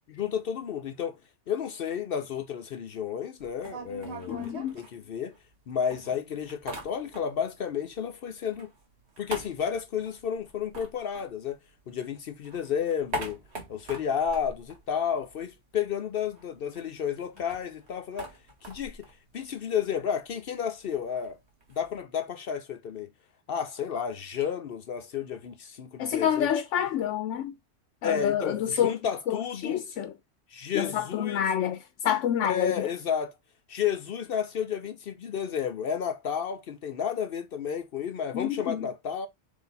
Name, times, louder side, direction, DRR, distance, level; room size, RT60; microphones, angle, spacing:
voice 1, 0.1-1.2 1.5-5.4 5.7-8.7 9.2-11.6 11.9-13.4 13.7-18.4 18.6-19.1 19.3-21.4 21.7-23.1 23.5-26.5 28.0-29.8 30.5-31.5 32.4-33.3 33.7-39.3, left 8 dB, 60° left, 0.7 m, -32 dB
sound 1, 3.4-5.6 5.9-7.5 7.8-12.0 12.3-15.6 15.8-15.9 16.2-22.0, right 1 dB, 60° right, 1.7 m, -42 dB
voice 2, 4.3-4.8 26.0-27.5 28.0-29.0 29.3-30.1 30.7-32.9 38.3-38.9, left 9 dB, 85° left, 0.9 m, -28 dB
4.0 x 3.3 x 3.9 m
omnidirectional pair, 1.2 m